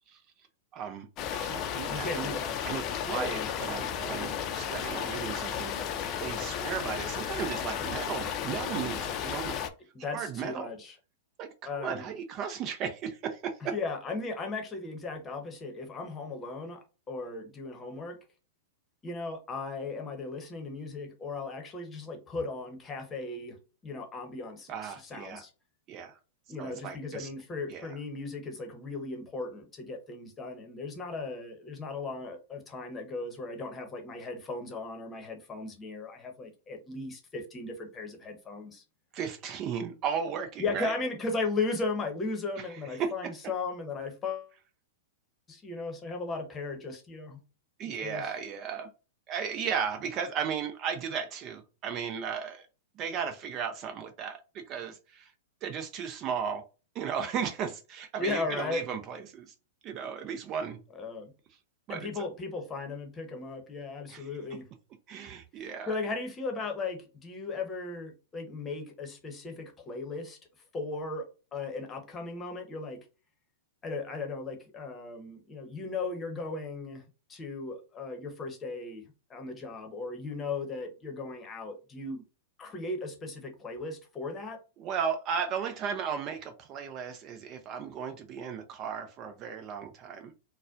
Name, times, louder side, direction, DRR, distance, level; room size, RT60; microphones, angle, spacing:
voice 1, 0.7-2.3 2.6-9.6 10.1-10.7 11.4-11.5 11.8-13.8 24.7-25.4 25.9-26.2 26.6-27.3 27.7-27.9 39.1-40.9 43.0-43.3 47.8-48.9 49.3-52.7 53.0-55.3 55.6-56.6 56.9-59.5 59.8-60.8 61.9-62.1 64.1-64.2 65.1-65.9 84.8-90.4, right 7 dB, 35° right, 0.5 m, -35 dB
sound 1, 1.2-9.7, left 9 dB, 35° left, 0.5 m, -34 dB
voice 2, 1.9-2.6 3.1-3.5 9.9-11.0 11.7-12.1 13.7-18.2 19.0-25.5 26.5-38.8 40.6-44.5 45.5-47.4 47.9-48.3 58.2-58.8 60.9-61.3 61.9-64.7 65.9-70.4 70.7-73.1 73.8-77.0 77.3-82.2 82.6-84.6, left 3 dB, 20° left, 0.9 m, -36 dB
4.1 x 2.2 x 2.5 m
hypercardioid pair, 120°, 0 cm